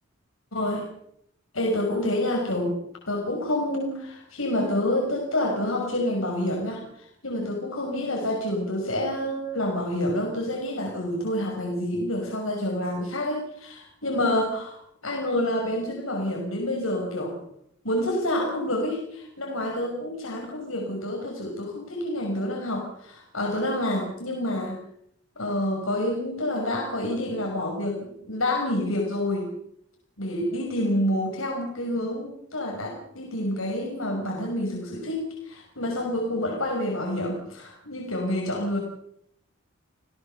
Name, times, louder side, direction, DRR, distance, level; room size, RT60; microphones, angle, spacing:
voice 1, 0.5-0.9 1.5-2.8 3.1-17.4 17.8-24.8 25.4-29.5 30.2-38.8, left 1 dB, 80° left, 0 dB, 5.7 m, -28 dB
29.5 x 18.0 x 6.9 m, 0.74 s
head